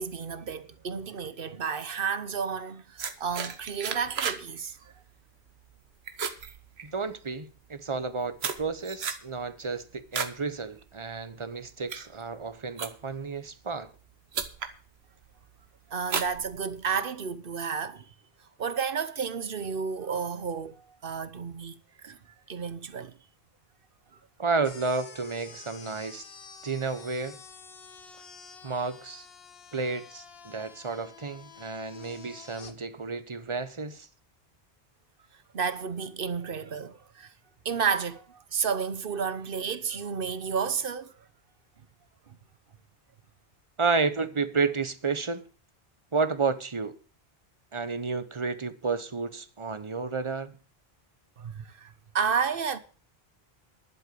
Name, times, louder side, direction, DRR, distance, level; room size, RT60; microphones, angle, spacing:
voice 1, 0.0-4.8 15.9-18.1 18.6-21.8 22.0-22.2 22.5-23.1 35.5-37.3 37.6-41.1 51.4-52.8, right 6 dB, 60° right, 1.1 m, -31 dB
sound 1, 3.0-4.5 4.8-5.1 5.5-5.8 6.1-7.2 7.9-10.4 10.8-11.1 11.6-13.2 14.0-14.1 14.3-14.8 15.2-15.6 16.0-17.0, right 6 dB, 80° right, 1.3 m, -34 dB
voice 2, 6.8-13.9 24.4-26.3 26.6-27.4 28.6-29.3 29.7-34.1 43.8-45.4 46.1-46.9 47.7-50.6, right 4 dB, 30° right, 0.9 m, -31 dB
sound 2, 24.6-32.7, left 6 dB, 70° left, 1.3 m, -49 dB
11.5 x 8.0 x 6.9 m
omnidirectional pair, 1.0 m